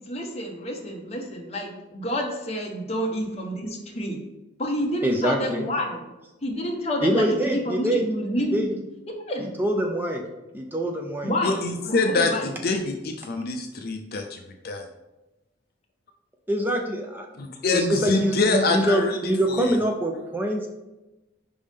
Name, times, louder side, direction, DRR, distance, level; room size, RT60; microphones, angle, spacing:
voice 1, 0.1-4.2 4.6-6.0 6.4-7.3 7.5-8.7 9.3-9.5 11.2-12.5, equal, 35° left, 0 dB, 1.0 m, -29 dB
voice 2, 5.0-5.6 7.0-8.0 8.5-8.7 9.6-10.2 10.5-11.3 16.5-17.3 17.7-20.7, equal, 10° right, 2 dB, 0.5 m, -24 dB
voice 3, 11.4-14.9 17.3-19.8, left 3 dB, 50° left, 3 dB, 0.5 m, -25 dB
5.3 x 3.5 x 5.1 m, 1.0 s
head